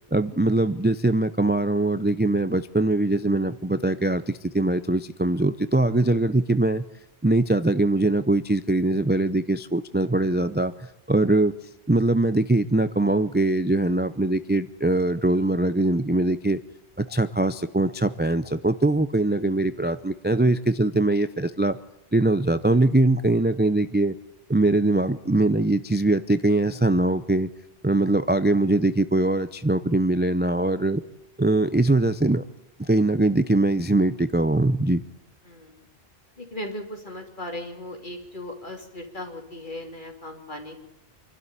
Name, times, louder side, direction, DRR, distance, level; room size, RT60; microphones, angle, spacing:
voice 1, 0.1-6.8 7.2-10.7 11.1-11.5 11.9-16.6 17.0-21.8 22.1-24.1 24.5-27.5 27.8-31.0 31.4-32.4 32.8-35.0, right 2 dB, 10° right, 12 dB, 0.5 m, -22 dB
voice 2, 35.4-35.9 36.4-40.8, left 1 dB, 45° left, 4 dB, 3.3 m, -37 dB
26.5 x 12.5 x 10.0 m, 0.93 s
omnidirectional pair, 1.2 m